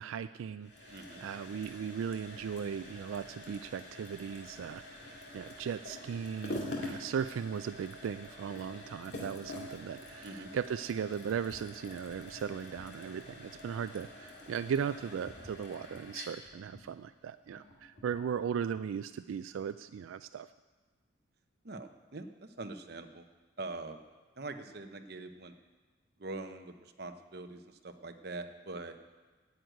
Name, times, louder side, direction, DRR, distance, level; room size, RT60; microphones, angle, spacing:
voice 1, 0.0-20.5, right 7 dB, 90° right, 13 dB, 0.3 m, -37 dB
sound 1, 0.6-18.3, left 1 dB, 60° left, 2.1 m, -46 dB
voice 2, 0.9-1.2 10.2-10.5 21.6-23.3 23.6-24.0 24.4-25.5 26.2-29.0, right 3 dB, 55° right, 7 dB, 0.8 m, -43 dB
9.6 x 7.9 x 9.0 m, 1.3 s
head